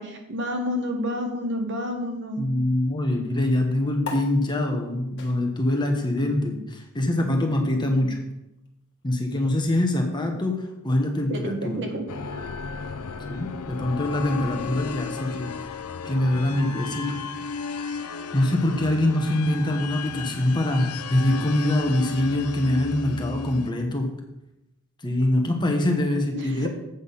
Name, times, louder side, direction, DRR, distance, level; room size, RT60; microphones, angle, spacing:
voice 1, 0.0-2.5 11.3-12.0 26.3-26.7, equal, 55° right, 3 dB, 1.4 m, -29 dB
voice 2, 2.4-8.2 9.0-11.9 13.3-15.7 16.0-17.2 18.3-24.1 25.0-26.7, left 1 dB, 20° left, 2 dB, 1.1 m, -24 dB
sound 1, 4.0-10.8, left 4 dB, 50° left, 1.5 m, -44 dB
sound 2, 12.1-23.7, left 5 dB, 85° left, 0.6 m, -34 dB
8.0 x 6.3 x 5.5 m, 0.90 s
head